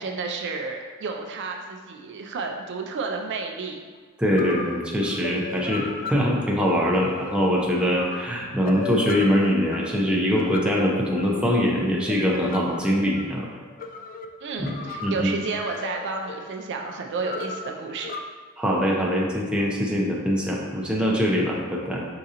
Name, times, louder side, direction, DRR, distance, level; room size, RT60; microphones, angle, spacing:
voice 1, 0.0-3.8 14.4-18.2, right 4 dB, 55° right, 3 dB, 0.4 m, -31 dB
sound 1, 4.0-4.1 4.3-18.2, left 4 dB, 40° left, 0.3 m, -37 dB
voice 2, 4.2-13.5 14.6-14.7 15.0-15.3 18.6-22.1, equal, 5° right, -3 dB, 0.6 m, -23 dB
4.9 x 3.7 x 2.8 m, 1.5 s
head